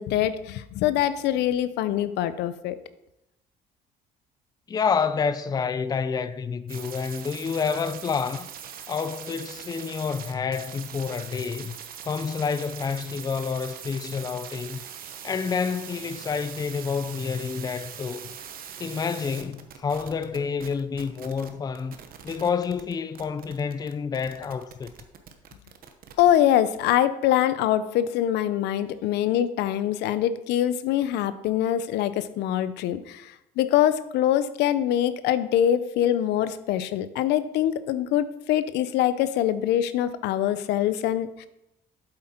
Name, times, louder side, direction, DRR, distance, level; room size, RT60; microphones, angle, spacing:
voice 1, 0.0-2.7 26.2-41.5, left 11 dB, 85° left, 0.6 m, -24 dB
voice 2, 4.7-8.5 8.9-11.8 12.0-14.8 15.2-18.3 18.8-22.0 22.2-24.9, left 6 dB, 25° left, 0.4 m, -28 dB
sound 1, 6.7-21.5 21.7-26.4, right 8 dB, 60° right, 1.0 m, -42 dB
7.8 x 7.7 x 4.4 m
cardioid pair, 110°, 17 cm